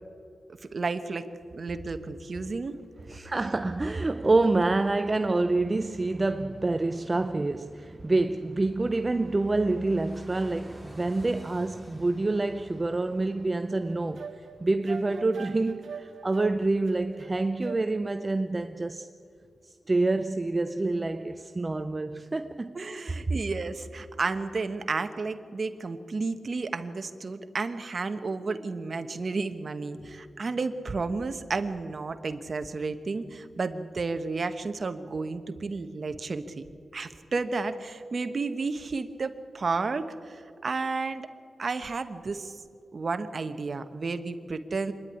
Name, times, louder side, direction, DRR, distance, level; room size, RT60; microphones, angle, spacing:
voice 1, 0.7-1.3 1.5-2.8 22.7-36.6 36.9-41.3 41.6-42.5 42.9-44.9, right 4 dB, 50° right, 1.1 m, -32 dB
Fixed-wing aircraft airplane, 1.4-18.2 18.5-18.6, equal, 5° left, 4.0 m, -55 dB
voice 2, 3.1-14.3 14.6-19.1 19.9-22.8, right 2 dB, 30° right, 0.5 m, -27 dB
sound 1, 13.7-18.2, right 6 dB, 80° right, 0.8 m, -43 dB
25.5 x 10.5 x 9.8 m
wide cardioid pair, 90°, 0 cm